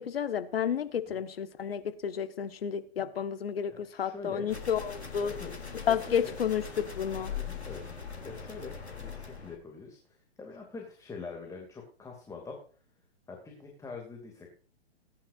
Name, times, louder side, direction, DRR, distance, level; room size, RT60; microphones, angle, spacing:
voice 1, 0.0-5.3 5.9-7.3, left 8 dB, 65° left, 1.6 m, -31 dB
voice 2, 3.7-4.5 5.2-5.5 5.8-6.3 7.3-12.6 13.3-14.5, left 4 dB, 10° left, 2.6 m, -44 dB
sound 1, 4.5-9.6, left 6 dB, 90° left, 3.1 m, -41 dB
20.0 x 10.5 x 2.6 m
figure-of-eight pair, 115°, 32 cm